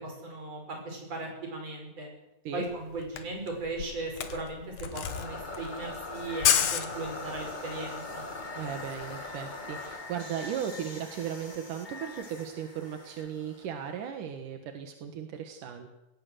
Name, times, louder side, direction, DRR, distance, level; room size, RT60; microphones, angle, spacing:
voice 1, 0.0-2.1 2.5-8.2, right 2 dB, 55° right, 2 dB, 6.7 m, -37 dB
Camera, 2.7-2.8 3.0-7.5, left 9 dB, 85° left, 3.0 m, -30 dB
sound 1, 5.0-14.1, left 2 dB, 25° left, 1.2 m, -41 dB
voice 2, 8.6-15.9, right 8 dB, 85° right, 6 dB, 3.1 m, -36 dB
19.5 x 17.5 x 7.8 m, 0.90 s
omnidirectional pair, 3.5 m